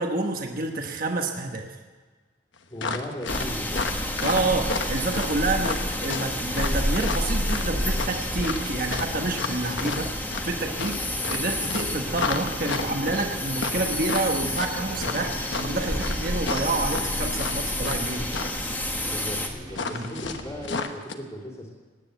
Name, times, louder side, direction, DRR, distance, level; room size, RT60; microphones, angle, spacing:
voice 1, 0.0-1.7 4.2-18.3 19.9-20.1, right 2 dB, 50° right, 2 dB, 1.2 m, -28 dB
voice 2, 2.7-4.0 19.0-21.7, equal, 25° left, -8 dB, 2.7 m, -37 dB
sound 1, 2.8-18.0 18.3-18.6 19.7-21.1, left 4 dB, 75° left, 1.1 m, -32 dB
sound 2, 3.3-19.5, left 1 dB, 10° left, 1.4 m, -29 dB
sound 3, 12.0-20.8, right 1 dB, 25° right, 1.8 m, -44 dB
17.5 x 9.8 x 8.1 m, 1.4 s
head